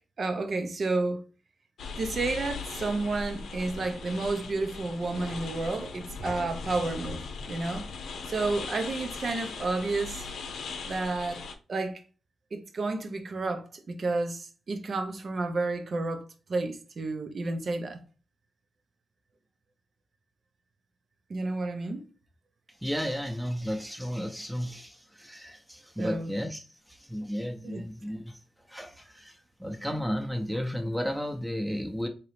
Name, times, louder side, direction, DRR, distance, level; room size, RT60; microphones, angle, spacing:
voice 1, 0.2-1.2 2.0-7.9 8.3-10.3 10.8-11.4 11.7-12.0 12.5-16.2 16.5-18.0 21.3-22.0 26.0-26.3 27.6-27.8, right 3 dB, 60° right, 0.8 m, -31 dB
sound 1, 1.8-11.5, left 4 dB, 85° left, 0.6 m, -39 dB
voice 2, 22.8-28.4 28.7-32.1, equal, ahead, 0.7 m, -33 dB
3.8 x 3.0 x 3.2 m
cardioid pair, 65°, 0 cm